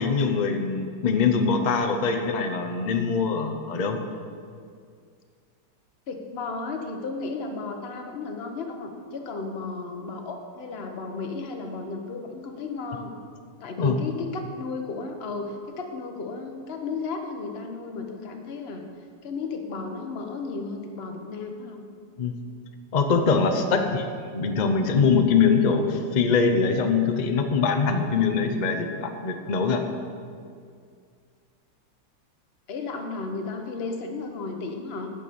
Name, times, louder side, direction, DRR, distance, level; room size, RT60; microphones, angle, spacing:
voice 1, 0.0-4.0 13.8-14.0 22.2-22.4 22.9-24.0 24.3-29.8, left 5 dB, 80° left, 5 dB, 0.4 m, -23 dB
voice 2, 6.1-13.1 13.6-18.8 19.2-21.8 23.6-24.0 32.7-35.1, left 4 dB, 40° left, 4 dB, 1.0 m, -34 dB
9.1 x 6.7 x 8.5 m, 2.2 s
omnidirectional pair, 2.1 m